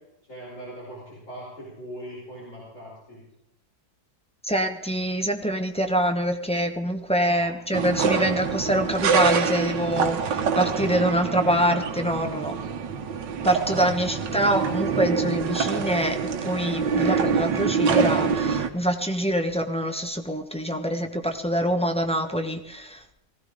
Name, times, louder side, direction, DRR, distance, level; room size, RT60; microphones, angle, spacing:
voice 1, 0.3-3.2 7.3-7.5 13.9-14.4, equal, 40° left, -7 dB, 6.0 m, -41 dB
voice 2, 4.4-12.6 13.4-16.2 16.4-23.0, equal, 5° left, 3 dB, 1.0 m, -25 dB
sound 1, 7.7-18.7, right 6 dB, 80° right, 1.7 m, -25 dB
19.5 x 16.5 x 3.8 m, 0.83 s
omnidirectional pair, 1.9 m